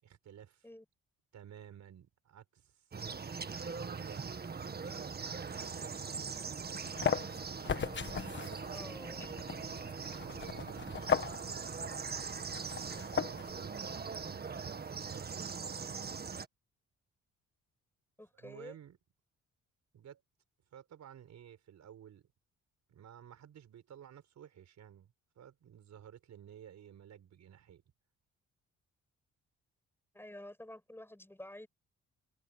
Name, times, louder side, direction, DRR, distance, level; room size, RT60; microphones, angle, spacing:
voice 1, 0.0-0.7 1.3-2.9 3.4-4.3 4.6-6.1 8.3-8.9 10.2-15.9 18.4-19.0 19.9-20.2 20.7-22.3 22.9-27.8, right 9 dB, 65° right, 5.5 m, -55 dB
sound 1, 2.9-16.5, right 5 dB, 30° right, 1.7 m, -41 dB
sound 2, 6.6-13.7, left 6 dB, 40° left, 1.4 m, -37 dB
voice 2, 8.7-9.3 18.2-18.8 30.1-31.7, left 1 dB, 10° left, 7.8 m, -49 dB
cardioid pair, 90°, 30 cm